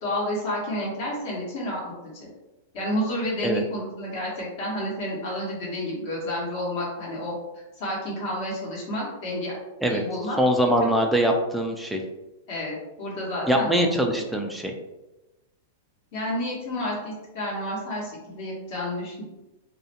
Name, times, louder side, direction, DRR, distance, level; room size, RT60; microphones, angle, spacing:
voice 1, 0.0-2.3 2.7-7.3 7.8-9.5 9.9-10.4 10.8-10.9 12.5-14.2 16.1-19.2, left 1 dB, 55° left, -5 dB, 1.0 m, -30 dB
voice 2, 10.4-12.0 13.5-14.7, equal, ahead, 1 dB, 0.3 m, -22 dB
2.3 x 2.1 x 2.7 m, 1.0 s
hypercardioid pair, 135°, 0 cm